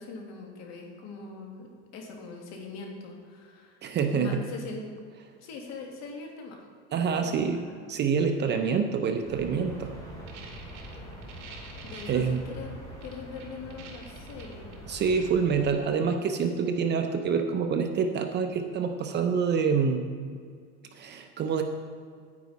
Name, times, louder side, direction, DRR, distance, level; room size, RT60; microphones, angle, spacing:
voice 1, 0.0-3.9 4.1-4.9 5.4-6.6 7.1-7.9 11.8-14.7 15.5-15.9, left 3 dB, 50° left, 1 dB, 2.0 m, -42 dB
voice 2, 3.8-4.3 6.9-9.9 12.1-12.4 14.9-20.0 20.9-21.6, right 6 dB, 30° right, 5 dB, 0.6 m, -26 dB
sound 1, 9.2-15.7, equal, 10° left, 3.0 m, -44 dB
sound 2, 10.1-12.4 13.0-14.7, right 6 dB, 55° right, 2.3 m, -47 dB
9.7 x 9.4 x 4.0 m, 2.1 s
supercardioid pair, 140°, 35 cm